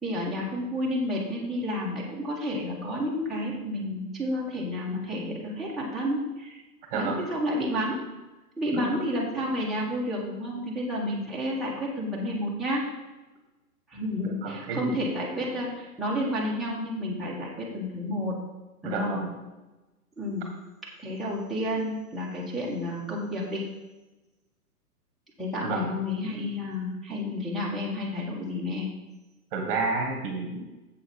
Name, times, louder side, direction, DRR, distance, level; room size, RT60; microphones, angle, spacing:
voice 1, 0.0-6.6 6.9-8.0 8.6-12.8 13.9-18.3 18.8-19.2 20.2-20.5 21.0-23.6 25.4-28.9, left 1 dB, ahead, -8 dB, 1.7 m, -30 dB
voice 2, 6.9-7.3 8.7-9.0 14.2-15.0 18.8-19.4 25.6-25.9 29.5-30.6, right 3 dB, 35° right, 2 dB, 1.6 m, -30 dB
7.7 x 6.9 x 5.4 m, 1.1 s
hypercardioid pair, 135°, 47 cm